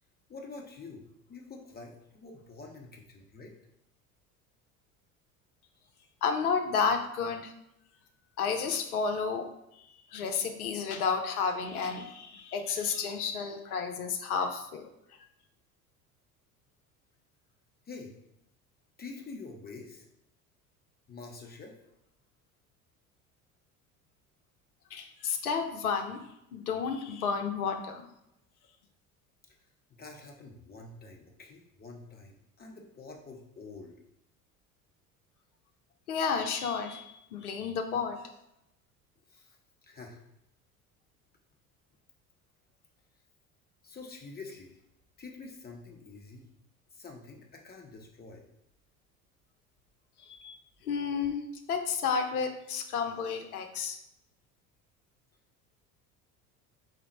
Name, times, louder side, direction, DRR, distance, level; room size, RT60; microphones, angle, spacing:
voice 1, 0.3-3.6 7.8-8.0 8.3-8.4 17.9-18.1 19.0-20.1 21.1-21.8 29.5-29.6 29.9-33.9 39.3-40.2 43.8-44.8 45.2-46.4 46.9-48.4, left 3 dB, 20° left, 1 dB, 0.7 m, -47 dB
voice 2, 6.2-7.5 8.4-9.5 9.8-14.9 24.9-26.2 26.5-28.1 36.1-38.3 50.3-50.6 50.8-51.4 51.7-54.0, left 5 dB, 80° left, 5 dB, 0.6 m, -31 dB
4.2 x 2.0 x 4.1 m, 0.83 s
figure-of-eight pair, 65°, 44 cm